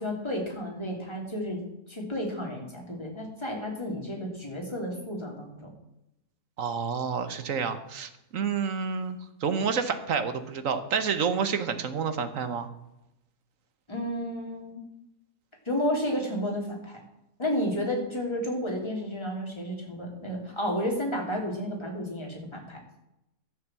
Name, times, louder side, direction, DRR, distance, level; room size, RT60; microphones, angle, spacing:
voice 1, 0.0-1.6 1.9-5.7 13.9-14.8 15.6-17.0 17.4-22.8, equal, 15° left, 0 dB, 2.9 m, -32 dB
voice 2, 6.6-12.7, right 6 dB, 55° right, 10 dB, 1.3 m, -29 dB
12.0 x 7.3 x 7.4 m, 0.90 s
omnidirectional pair, 1.7 m